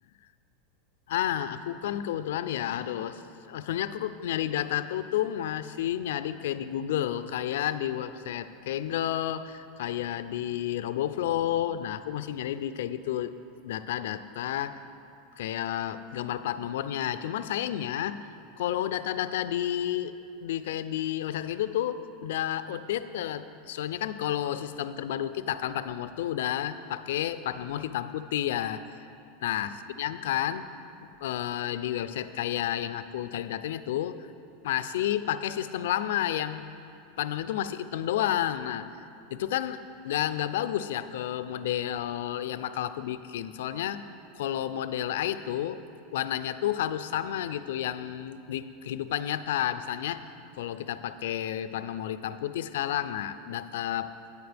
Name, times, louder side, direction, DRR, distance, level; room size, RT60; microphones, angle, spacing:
voice 1, 1.1-3.2 3.5-13.3 13.6-14.8 15.4-18.2 18.6-20.1 20.4-29.0 29.4-29.7 30.0-30.7 31.2-34.3 34.6-36.6 37.2-38.9 39.3-44.0 44.3-45.8 46.1-50.2 50.6-54.1, left 11 dB, 85° left, 12 dB, 0.4 m, -31 dB
12.5 x 9.3 x 3.4 m, 2.6 s
supercardioid pair, 155°, 0 cm